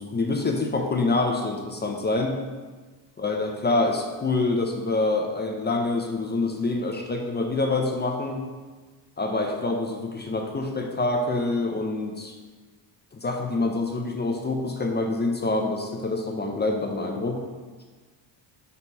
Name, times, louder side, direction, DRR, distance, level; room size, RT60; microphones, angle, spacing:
voice 1, 0.0-2.4 3.2-8.4 9.2-12.3 13.1-17.4, left 2 dB, 20° left, 2 dB, 0.6 m, -26 dB
4.3 x 4.1 x 5.5 m, 1.4 s
cardioid pair, 95°, 49 cm